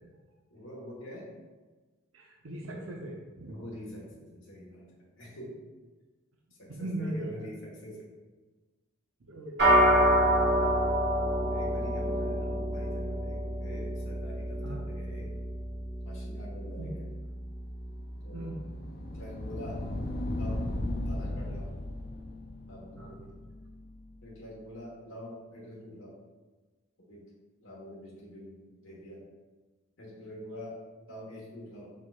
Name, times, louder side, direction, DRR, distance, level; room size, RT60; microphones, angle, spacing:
voice 1, 0.5-1.3 3.5-5.6 6.5-8.1 11.4-15.4 16.0-17.2 18.2-18.6 19.1-19.9 20.4-20.7 21.0-21.7 22.7-23.4 24.2-26.2 27.1-27.3 27.6-29.3 30.0-31.9, equal, 70° left, -5 dB, 1.3 m, -46 dB
voice 2, 2.1-3.6 6.7-7.5 9.3-9.6 14.6-14.8 16.8-16.9 18.3-18.6 23.0-23.2, right 1 dB, 85° right, -1 dB, 0.7 m, -38 dB
sound 1, 9.6-19.1, equal, 55° right, 1.5 m, -28 dB
sound 2, 17.6-24.5, left 1 dB, 45° left, 0.4 m, -37 dB
4.7 x 4.4 x 2.4 m, 1.3 s
head